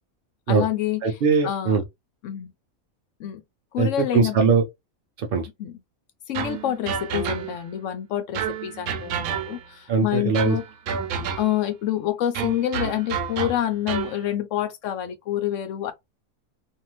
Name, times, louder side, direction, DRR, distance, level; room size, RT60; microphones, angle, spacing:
voice 1, 0.5-1.0 1.4-1.8 2.2-2.5 3.2-3.4 3.7-4.5 5.6-5.7 6.3-10.6 11.4-15.9, left 11 dB, 70° left, 0.9 m, -27 dB
voice 2, 1.0-1.8 3.8-4.6 5.2-5.5 9.9-10.6, right 5 dB, 60° right, 0.6 m, -21 dB
sound 1, 6.3-7.8 8.3-9.8 10.3-11.7 12.3-14.2, right 7 dB, 85° right, 1.1 m, -30 dB
2.7 x 2.4 x 2.9 m
omnidirectional pair, 1.5 m